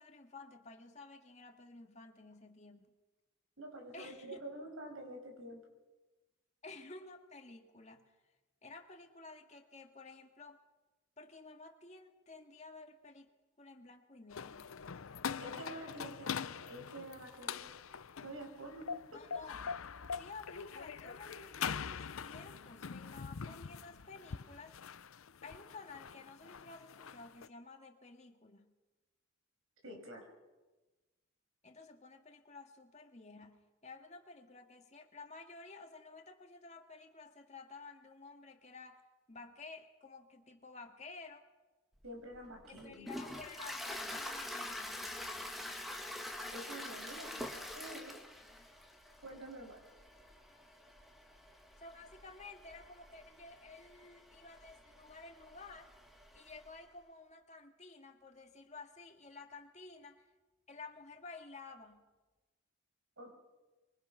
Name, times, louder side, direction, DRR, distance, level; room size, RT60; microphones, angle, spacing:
voice 1, 0.0-2.9 3.9-4.4 6.6-8.2 8.6-10.6 11.2-13.3 13.6-14.6 19.1-19.7 20.1-24.8 25.4-28.7 31.6-41.5 42.7-45.1 51.8-55.9 56.3-60.2 60.7-62.1, left 3 dB, 35° left, 4 dB, 2.2 m, -53 dB
voice 2, 3.6-5.6 15.4-17.8 18.2-19.2 29.8-30.3 42.0-43.1 46.5-48.2 49.2-49.8 63.2-63.3, right 1 dB, 90° right, 2 dB, 6.5 m, -48 dB
sound 1, 14.3-27.5, left 6 dB, 90° left, 0.6 m, -43 dB
Toilet flush, 42.0-56.8, left 1 dB, ahead, 1.8 m, -46 dB
25.0 x 23.5 x 6.0 m, 1.2 s
head